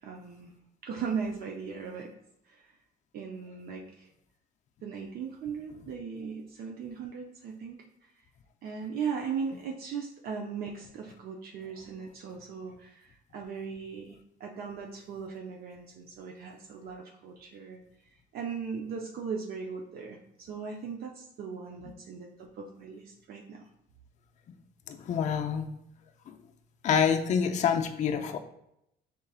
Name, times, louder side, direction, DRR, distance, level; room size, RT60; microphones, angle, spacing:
voice 1, 0.0-0.5 0.8-2.1 2.5-2.6 3.1-4.1 4.8-8.1 8.6-17.8 18.3-23.7, right 6 dB, 65° right, 1 dB, 0.6 m, -38 dB
voice 2, 24.9-25.7 26.3-26.4 26.8-28.4, left 7 dB, 45° left, 4 dB, 0.5 m, -27 dB
5.3 x 3.8 x 2.4 m, 0.78 s
cardioid pair, 110°, 17 cm